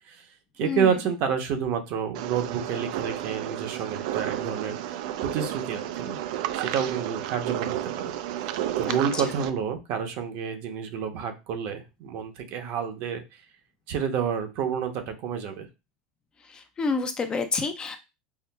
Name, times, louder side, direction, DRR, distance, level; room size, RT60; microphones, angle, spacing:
voice 1, 0.6-6.2 6.5-8.1 8.8-13.4 13.9-15.7, right 7 dB, 55° right, 6 dB, 0.8 m, -29 dB
sound 1, 2.1-9.5, right 12 dB, 70° right, 0.3 m, -32 dB
voice 2, 16.5-18.0, left 4 dB, 20° left, 7 dB, 0.4 m, -28 dB
5.6 x 2.0 x 2.2 m, 0.26 s
supercardioid pair, 130°, 4 cm